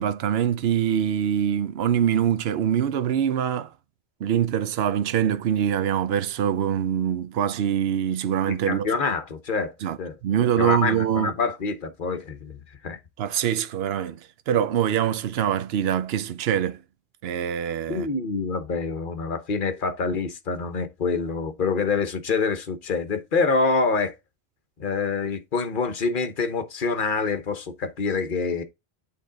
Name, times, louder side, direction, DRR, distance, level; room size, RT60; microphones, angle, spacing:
voice 1, 0.0-3.7 4.2-8.9 9.8-10.0 10.2-11.3 13.2-16.8 17.2-18.1, right 9 dB, 70° right, 0.9 m, -24 dB
voice 2, 8.5-10.2 10.6-12.6 12.8-13.0 17.9-24.1 24.8-28.6, left 4 dB, 50° left, 1.1 m, -26 dB
8.4 x 3.7 x 3.9 m
omnidirectional pair, 1.1 m